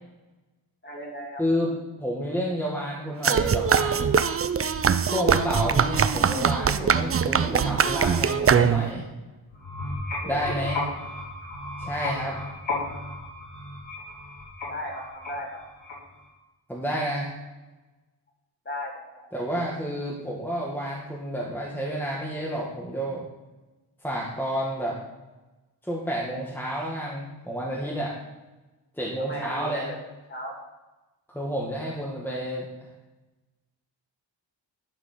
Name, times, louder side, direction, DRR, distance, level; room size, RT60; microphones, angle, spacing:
voice 1, 0.8-1.4 10.2-10.8 14.7-15.5 18.6-19.3 29.2-30.0 30.3-30.5, left 1 dB, 25° left, -2 dB, 2.9 m, -36 dB
voice 2, 1.4-1.7 2.0-4.1 5.0-9.1 10.2-10.8 11.8-12.4 16.7-17.3 19.3-23.2 24.0-25.0 25.8-28.2 28.9-29.9 31.3-32.6, equal, 5° left, -4 dB, 1.7 m, -30 dB
sound 1, 3.2-9.1, right 7 dB, 35° right, 0.4 m, -22 dB
sound 2, 9.5-16.3, left 2 dB, 70° left, 3.8 m, -34 dB
12.0 x 5.2 x 6.6 m, 1.1 s
wide cardioid pair, 155°, 44 cm